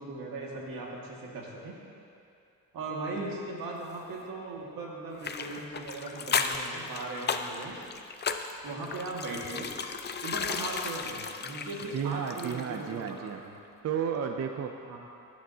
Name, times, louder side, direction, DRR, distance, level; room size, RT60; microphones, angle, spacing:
voice 1, 0.0-1.8 2.7-7.8 8.6-9.7 10.2-13.5 14.8-15.0, right 2 dB, 80° right, -2 dB, 1.9 m, -38 dB
sound 1, 5.2-12.8 13.1-13.2, left 5 dB, 30° left, 0.4 m, -34 dB
voice 2, 11.9-13.4 13.8-15.0, right 7 dB, 50° right, 4 dB, 0.5 m, -33 dB
15.0 x 10.0 x 2.8 m, 2.6 s
wide cardioid pair, 155°, 34 cm